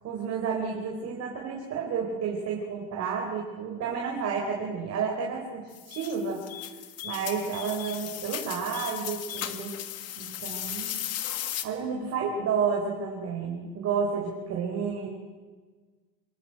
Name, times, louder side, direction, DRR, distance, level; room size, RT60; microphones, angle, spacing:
voice 1, 0.0-6.5 7.0-9.8 10.2-11.1 11.6-15.1, right 6 dB, 30° right, 0 dB, 4.5 m, -31 dB
sound 1, 5.7-11.6, left 11 dB, 30° left, 1.7 m, -36 dB
26.0 x 22.5 x 8.0 m, 1.4 s
supercardioid pair, 155°, 49 cm